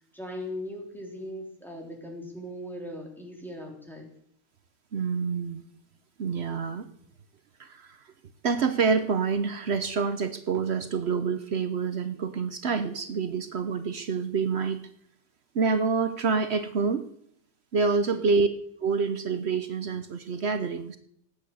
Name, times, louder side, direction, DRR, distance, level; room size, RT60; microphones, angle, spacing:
voice 1, 0.0-4.1 18.1-18.3, left 1 dB, ahead, -1 dB, 3.8 m, -39 dB
voice 2, 4.9-5.6 6.2-6.9 7.6-8.0 8.4-14.8 15.5-17.0 17.7-18.5 18.8-21.0, right 5 dB, 70° right, 9 dB, 0.6 m, -27 dB
18.0 x 9.0 x 7.9 m, 0.70 s
omnidirectional pair, 2.3 m